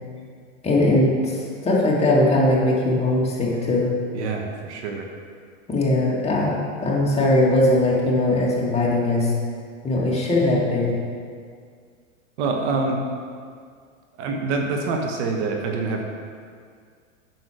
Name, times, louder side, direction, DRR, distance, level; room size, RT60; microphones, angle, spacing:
voice 1, 0.6-4.0 5.7-6.6 6.8-9.3 9.8-11.0, left 1 dB, 15° left, -5 dB, 2.0 m, -20 dB
voice 2, 4.1-5.1 12.4-13.0 14.2-16.0, right 3 dB, 60° right, 2 dB, 1.4 m, -25 dB
9.1 x 6.3 x 5.0 m, 2.1 s
hypercardioid pair, 120°, 40 cm